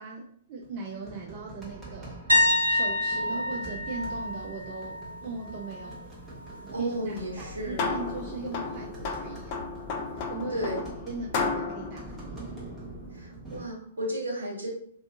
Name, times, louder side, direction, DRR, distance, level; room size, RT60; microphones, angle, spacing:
voice 1, 0.0-6.0 6.7-9.6 10.3-10.8 11.1-12.5, right 3 dB, 40° right, -2 dB, 0.4 m, -39 dB
sound 1, 0.6-13.6, right 2 dB, 15° right, 0.9 m, -45 dB
sound 2, 2.3-6.0 6.4-6.7 9.6-9.7, left 2 dB, 85° right, 0.6 m, -28 dB
voice 2, 6.7-8.0 10.5-10.8 13.1-14.7, equal, 70° right, -3 dB, 1.0 m, -33 dB
sound 3, 7.3-13.2, left 4 dB, 40° left, 0.3 m, -34 dB
2.4 x 2.4 x 2.5 m, 0.62 s
figure-of-eight pair, 110°, 0 cm